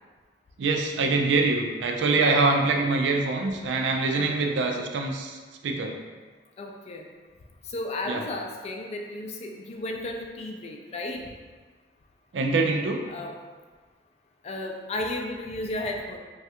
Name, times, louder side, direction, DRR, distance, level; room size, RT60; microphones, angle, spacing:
voice 1, 0.6-6.0 8.1-8.2 12.3-13.1, right 3 dB, 90° right, 3 dB, 0.4 m, -24 dB
voice 2, 4.1-4.5 6.6-7.0 7.7-11.3 13.1-13.4 14.4-16.2, left 2 dB, 35° left, 2 dB, 0.3 m, -34 dB
3.2 x 2.3 x 2.8 m, 1.4 s
head